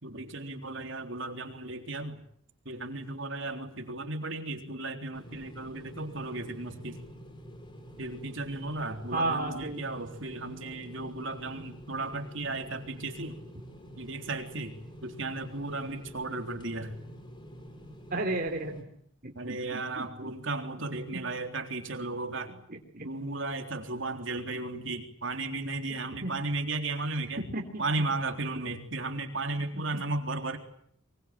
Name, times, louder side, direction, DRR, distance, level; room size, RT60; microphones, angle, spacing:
voice 1, 0.0-2.2 2.7-7.0 8.0-13.4 14.0-17.0 19.4-22.5 23.0-27.4 27.8-30.6, right 2 dB, 65° right, 5 dB, 3.8 m, -35 dB
sound 1, 5.1-18.8, equal, 25° left, 4.4 m, -48 dB
voice 2, 9.1-9.8 18.1-18.8 19.2-20.3 21.1-21.2 22.7-23.1 26.2-26.3 27.4-27.8 29.7-30.0, right 2 dB, 45° right, 1 dB, 3.3 m, -33 dB
24.5 x 24.0 x 9.0 m, 0.66 s
head